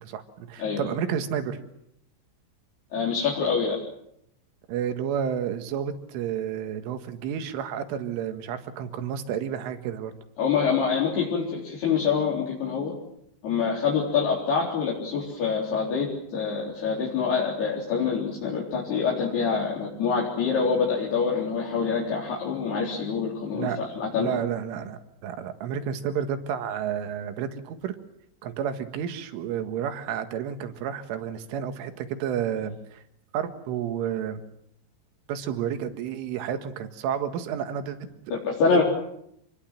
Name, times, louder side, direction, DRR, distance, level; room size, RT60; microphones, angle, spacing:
voice 1, 0.0-1.6 4.7-10.1 23.5-23.8 24.2-28.0 28.4-33.0 33.3-34.4 35.3-38.1 38.7-38.8, right 8 dB, 80° right, 8 dB, 4.2 m, -31 dB
voice 2, 2.9-3.8 10.4-12.9 13.4-24.4 38.3-38.8, left 5 dB, 55° left, -3 dB, 5.7 m, -26 dB
27.5 x 21.5 x 7.5 m, 0.76 s
omnidirectional pair, 5.6 m